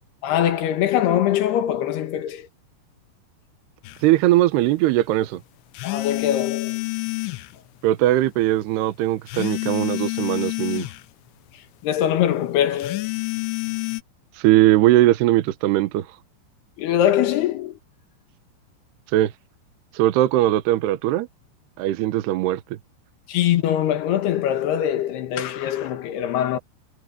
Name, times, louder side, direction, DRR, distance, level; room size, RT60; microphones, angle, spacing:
voice 1, 0.2-2.5 5.8-6.7 11.8-13.1 16.8-17.8 23.3-26.6, left 11 dB, 70° left, 3.4 m, -22 dB
sound 1, 3.8-4.0 5.8-7.5 9.3-11.0 12.8-14.0, left 25 dB, 90° left, 3.2 m, -28 dB
voice 2, 4.0-5.4 7.8-10.9 14.4-16.1 19.1-19.3 19.9-21.3 21.8-22.6, right 15 dB, 75° right, 2.9 m, -19 dB
omnidirectional pair, 5.1 m